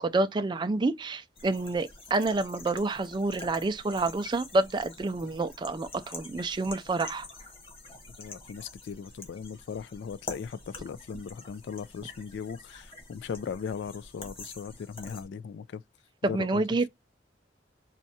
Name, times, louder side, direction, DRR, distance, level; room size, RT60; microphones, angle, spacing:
voice 1, 0.0-7.3 16.2-16.9, right 2 dB, 25° right, 0.4 m, -28 dB
sound 1, 1.4-15.3, left 3 dB, 30° left, 1.3 m, -47 dB
voice 2, 8.2-15.8 16.2-16.6, left 6 dB, 70° left, 0.3 m, -38 dB
4.2 x 2.3 x 2.7 m
head